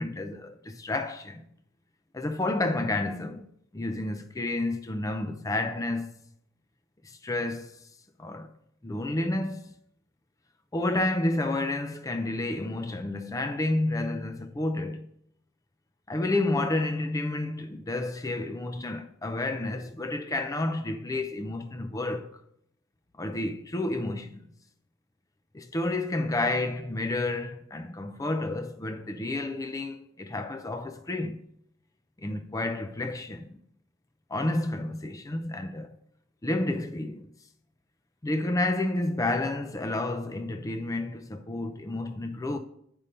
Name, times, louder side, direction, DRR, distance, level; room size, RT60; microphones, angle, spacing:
voice 1, 0.0-1.4 2.1-3.5 3.7-6.1 7.0-7.9 8.2-8.5 8.8-9.8 10.7-15.1 16.1-22.4 23.2-24.4 25.5-31.4 32.2-33.6 34.3-36.0 36.4-37.3 38.2-42.6, left 2 dB, 15° left, 0.4 m, -30 dB
8.7 x 5.3 x 5.4 m
head